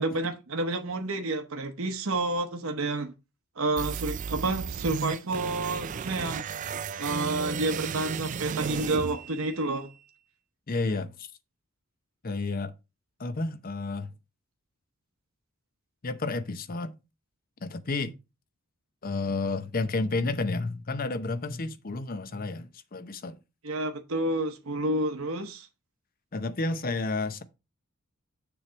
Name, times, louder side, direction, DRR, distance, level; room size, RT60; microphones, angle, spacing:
voice 1, 0.0-3.1 3.6-6.4 7.0-9.9 23.6-25.7, right 2 dB, 65° right, 0.9 m, -29 dB
sound 1, 3.8-9.8, right 6 dB, 35° right, 0.3 m, -34 dB
voice 2, 10.7-11.3 12.2-12.7 13.2-14.1 16.0-16.9 17.6-18.1 19.0-23.4 26.3-27.4, left 3 dB, 40° left, 0.7 m, -31 dB
7.0 x 3.4 x 6.2 m
head